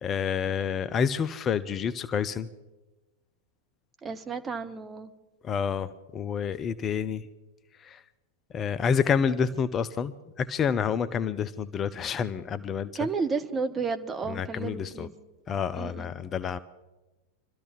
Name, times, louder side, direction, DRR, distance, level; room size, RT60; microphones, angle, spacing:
voice 1, 0.0-2.5 5.4-7.3 7.7-8.0 8.5-13.1 14.3-15.1 15.5-16.6, left 7 dB, 25° left, 14 dB, 0.5 m, -28 dB
voice 2, 4.0-5.1 12.9-15.1 15.7-16.1, right 4 dB, 20° right, 7 dB, 1.1 m, -32 dB
26.5 x 13.5 x 3.1 m, 1.1 s
figure-of-eight pair, 90°, 0 cm